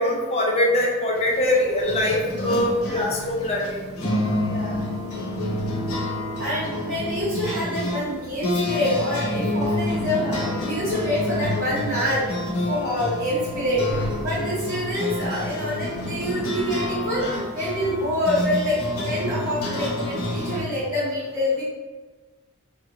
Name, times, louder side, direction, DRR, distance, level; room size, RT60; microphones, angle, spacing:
voice 1, 0.0-3.8, left 1 dB, 30° left, -1 dB, 0.4 m, -22 dB
sound 1, 1.2-20.6, left 1 dB, 75° left, 0.7 m, -28 dB
voice 2, 2.8-3.1 4.4-4.8 6.4-12.2 12.7-17.2 17.5-21.6, equal, 65° right, -11 dB, 0.8 m, -26 dB
2.5 x 2.1 x 2.9 m, 1.3 s
head